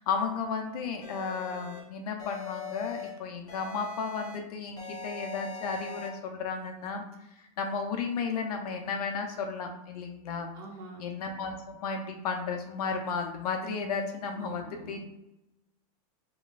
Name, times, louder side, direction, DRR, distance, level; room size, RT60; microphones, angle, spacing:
voice 1, 0.0-7.0 7.4-10.5 11.0-15.0, left 5 dB, 85° left, 3 dB, 0.8 m, -33 dB
sound 1, 1.0-1.8 2.2-3.1 3.5-4.4 4.8-6.1, left 5 dB, 20° left, 0.9 m, -41 dB
voice 2, 10.5-11.0 14.3-15.0, right 3 dB, 35° right, 2 dB, 0.5 m, -46 dB
5.1 x 3.1 x 2.5 m, 0.89 s
supercardioid pair, 180°, 19 cm